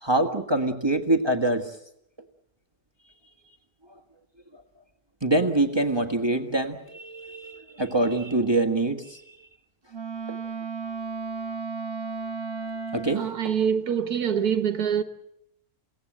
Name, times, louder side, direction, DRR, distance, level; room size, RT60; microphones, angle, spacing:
voice 1, 0.0-1.8 4.5-4.6 5.2-9.5 10.3-10.4 12.9-13.5, right 2 dB, 15° right, 1.6 m, -25 dB
Wind instrument woodwind instrument, 9.9-13.4, right 4 dB, 50° right, 1.4 m, -34 dB
voice 2, 13.2-15.0, right 8 dB, 85° right, 1.6 m, -25 dB
29.5 x 17.5 x 7.9 m
omnidirectional pair, 1.6 m